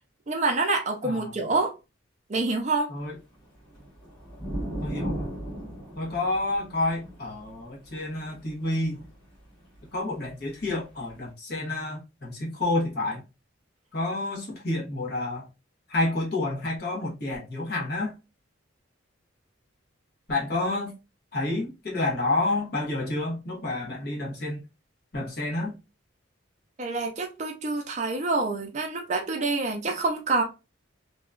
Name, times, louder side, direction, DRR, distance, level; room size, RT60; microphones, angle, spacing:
voice 1, 0.3-1.7 2.3-2.9 26.8-30.4, right 3 dB, 35° right, 0.5 m, -27 dB
voice 2, 1.0-1.3 2.9-3.2 4.8-5.3 6.0-9.1 9.9-13.2 13.9-15.5 15.9-18.2 20.3-21.0 21.3-24.6 25.1-25.8, left 2 dB, 50° left, 1.1 m, -29 dB
sound 1, 3.4-9.9 10.8-10.9, right 1 dB, 25° left, 1.6 m, -37 dB
2.8 x 2.3 x 2.4 m
head